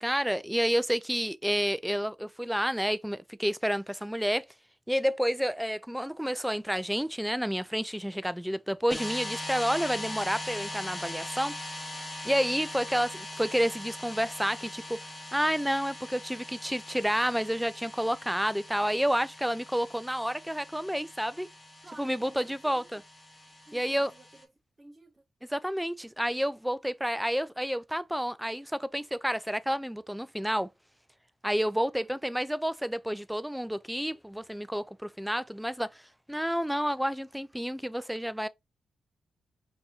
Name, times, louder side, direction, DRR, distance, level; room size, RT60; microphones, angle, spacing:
voice 1, 0.0-4.5 4.9-11.6 12.2-21.5 22.0-23.0 23.7-24.1 25.5-30.7 31.4-36.0 36.3-38.5, equal, 5° right, 0.3 m, -30 dB
sound 1, 8.9-24.4, left 1 dB, 25° left, 1.0 m, -41 dB
voice 2, 12.3-12.6 21.8-23.0 23.7-24.5 24.8-25.2 31.9-32.2, right 2 dB, 35° right, 0.8 m, -53 dB
4.6 x 2.7 x 2.7 m
supercardioid pair, 50°, 0 cm